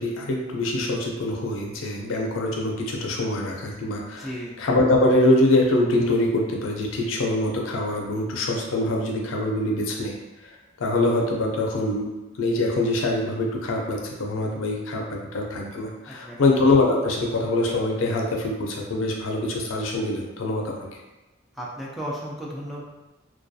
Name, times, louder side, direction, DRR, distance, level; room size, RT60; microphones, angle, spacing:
voice 1, 0.0-10.2 10.4-12.1 12.4-20.7, left 2 dB, 85° left, 0 dB, 0.5 m, -24 dB
voice 2, 4.2-4.6 16.1-16.5 21.5-22.8, equal, ahead, -5 dB, 0.3 m, -34 dB
2.3 x 2.2 x 2.6 m, 1.1 s
head